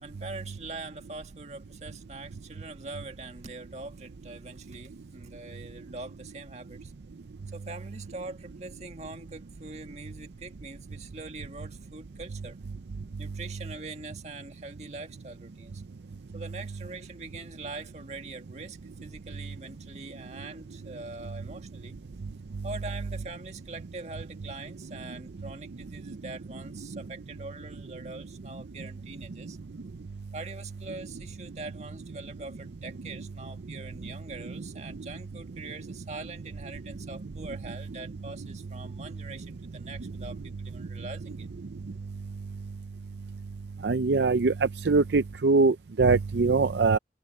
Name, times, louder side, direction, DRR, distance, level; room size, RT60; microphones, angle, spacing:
voice 1, 0.0-6.9 7.5-12.6 13.2-15.8 16.3-22.0 22.6-29.6 30.3-41.5, right 3 dB, 40° right, 1.9 m, -43 dB
voice 2, 43.8-47.0, right 4 dB, 75° right, 0.5 m, -23 dB
head